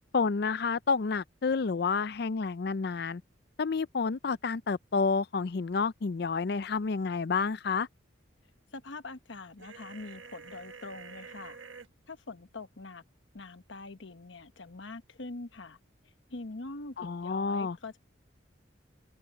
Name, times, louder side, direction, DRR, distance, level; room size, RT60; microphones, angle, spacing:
voice 1, 0.1-3.2 3.6-7.9 17.0-17.8, left 4 dB, 55° left, 0.5 m, -29 dB
voice 2, 8.7-11.6 12.1-13.0 13.3-15.8 16.3-18.0, left 3 dB, 75° left, 1.1 m, -44 dB
sound 1, 9.6-11.9, right 5 dB, 80° right, 1.5 m, -48 dB
head